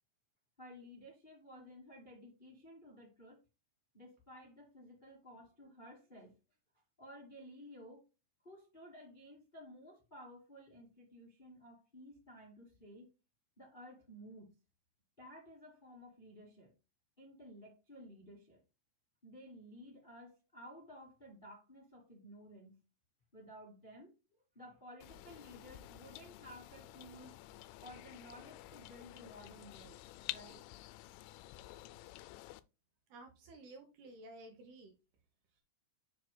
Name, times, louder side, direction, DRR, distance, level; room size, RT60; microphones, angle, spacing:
voice 1, 0.6-3.4 3.9-6.3 7.0-8.0 8.4-13.1 13.6-14.5 15.2-16.7 17.2-18.6 19.2-22.8 23.3-24.1 24.5-27.4 27.8-30.0 30.3-30.6, equal, 30° left, -2 dB, 0.9 m, -55 dB
sound 1, 25.0-32.6, left 16 dB, 85° left, 3.1 m, -50 dB
voice 2, 33.1-34.9, right 2 dB, 70° right, 5 dB, 2.5 m, -53 dB
7.6 x 6.6 x 2.2 m, 0.28 s
omnidirectional pair, 5.6 m